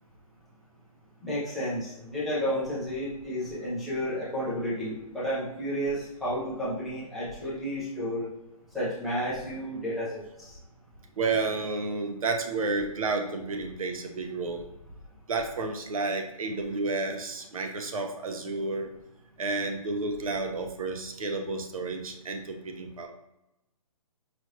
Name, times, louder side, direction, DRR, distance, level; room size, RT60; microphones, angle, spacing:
voice 1, 1.2-8.3 8.7-10.6, equal, ahead, -12 dB, 0.4 m, -31 dB
voice 2, 11.2-14.6 15.3-18.9 19.4-23.1, right 3 dB, 60° right, 4 dB, 0.8 m, -31 dB
4.9 x 2.6 x 3.1 m, 0.92 s
hypercardioid pair, 165°, 20 cm